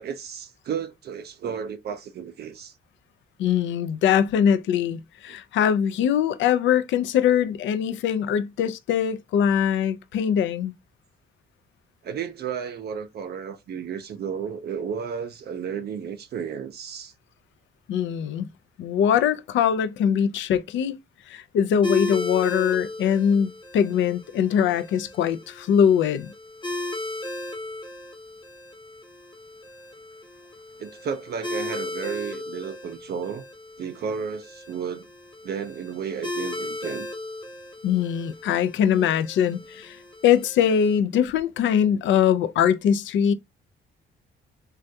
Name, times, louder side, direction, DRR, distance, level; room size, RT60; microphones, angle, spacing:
voice 1, 0.0-2.7 12.0-17.1 30.8-33.4 33.8-35.1 35.4-37.1, right 7 dB, 55° right, 0.4 m, -33 dB
voice 2, 3.4-10.7 17.9-18.5 18.8-20.9 21.3-26.3 37.8-43.3, left 8 dB, 70° left, 0.4 m, -22 dB
sound 1, 21.8-41.0, left 1 dB, 25° left, 0.8 m, -36 dB
3.3 x 2.3 x 2.6 m
cardioid pair, 90°, 20 cm